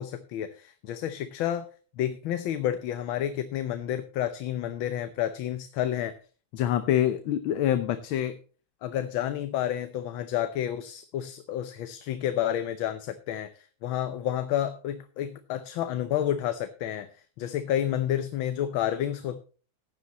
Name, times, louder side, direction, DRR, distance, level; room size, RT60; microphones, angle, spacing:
voice 1, 0.0-1.7 2.0-6.1 6.5-8.4 8.8-19.4, left 11 dB, 85° left, 10 dB, 1.6 m, -29 dB
16.0 x 9.9 x 3.0 m, 0.37 s
omnidirectional pair, 2.2 m